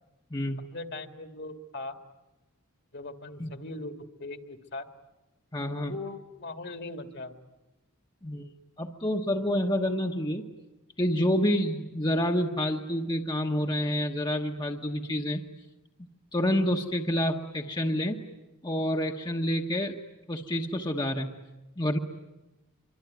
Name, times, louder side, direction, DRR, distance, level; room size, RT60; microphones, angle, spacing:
voice 1, 0.7-2.0 2.9-4.9 5.8-7.4, left 2 dB, 50° left, 8 dB, 1.9 m, -40 dB
voice 2, 5.5-5.9 8.2-8.5 8.8-10.4 11.0-15.4 16.3-18.2 18.6-20.0 20.3-21.3 21.8-22.0, equal, 20° left, 2 dB, 1.2 m, -28 dB
26.5 x 24.0 x 9.4 m, 1.0 s
head